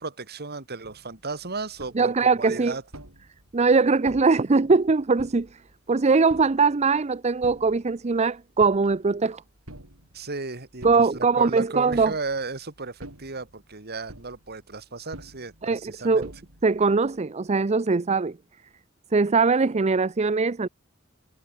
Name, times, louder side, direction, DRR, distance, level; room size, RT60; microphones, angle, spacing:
voice 1, 0.0-2.8 10.1-16.3, right 3 dB, 50° right, 2.8 m, -35 dB
sound 1, 0.8-17.2, right 1 dB, 80° right, 6.7 m, -49 dB
voice 2, 2.0-2.7 3.5-5.5 5.9-9.4 10.8-12.1 15.6-16.3 16.6-18.4 19.1-20.7, right 4 dB, 30° right, 0.6 m, -21 dB
head